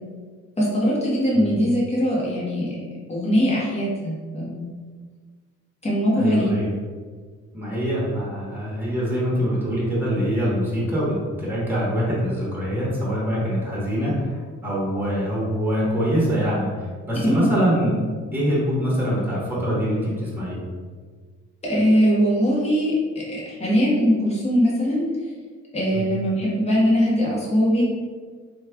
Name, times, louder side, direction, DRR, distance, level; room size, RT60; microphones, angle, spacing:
voice 1, 0.6-2.8 3.1-4.7 5.8-6.5 17.2-17.5 21.7-25.0 25.7-27.8, equal, 20° left, -6 dB, 1.2 m, -21 dB
voice 2, 6.1-6.7 7.5-18.0 18.3-20.6 25.9-26.0, equal, 5° right, -6 dB, 1.3 m, -24 dB
3.1 x 2.4 x 3.4 m, 1.5 s
cardioid pair, 90°, 30 cm